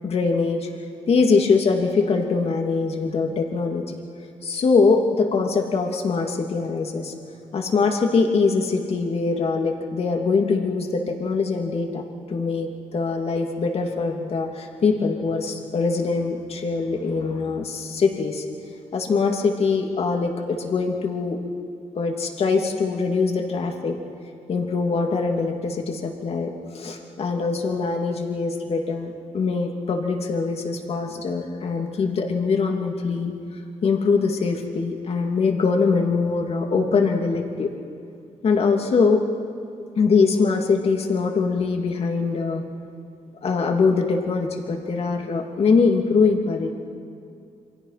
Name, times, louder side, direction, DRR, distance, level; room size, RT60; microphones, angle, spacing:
voice 1, 0.0-0.7 1.1-3.9 4.4-7.1 7.5-12.0 12.3-18.4 18.9-21.4 21.9-24.0 24.5-33.3 33.8-37.7 38.4-39.2 39.9-42.7 43.4-46.7, left 4 dB, 55° left, 3 dB, 2.7 m, -22 dB
28.5 x 24.0 x 5.9 m, 2.4 s
cardioid pair, 95°, 12 cm